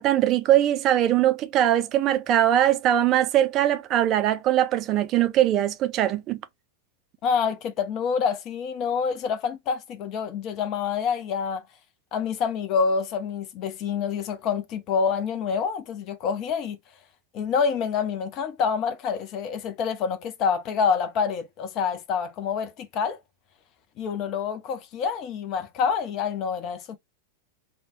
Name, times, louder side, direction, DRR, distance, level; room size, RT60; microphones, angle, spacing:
voice 1, 0.0-6.4, right 12 dB, 35° right, 0.3 m, -21 dB
voice 2, 7.2-11.6 12.1-16.8 17.3-23.2 24.0-27.0, left 6 dB, 35° left, 0.4 m, -27 dB
2.6 x 2.0 x 2.9 m
figure-of-eight pair, 90°, 0 cm